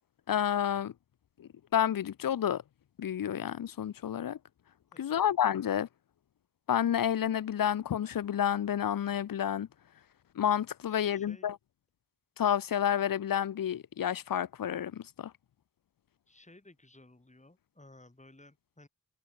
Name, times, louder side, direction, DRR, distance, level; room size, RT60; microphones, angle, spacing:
voice 1, 0.3-0.9 1.4-2.6 3.0-4.4 5.0-5.9 6.7-9.7 10.3-11.6 12.4-15.3, left 9 dB, 65° left, 0.5 m, -30 dB
voice 2, 10.9-11.5 16.3-18.9, left 2 dB, 20° left, 3.6 m, -57 dB
wide cardioid pair, 65°, 36 cm